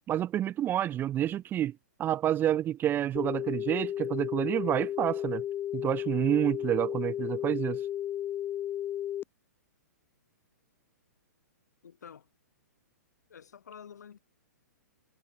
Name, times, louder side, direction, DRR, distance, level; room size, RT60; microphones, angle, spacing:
voice 1, 0.1-5.4 5.7-7.8, right 11 dB, 20° right, 0.6 m, -29 dB
sound 1, 3.1-9.2, left 11 dB, 25° left, 1.5 m, -34 dB
voice 2, 11.8-12.3 13.3-14.2, left 7 dB, 75° left, 6.1 m, -49 dB
hypercardioid pair, 120°, 9 cm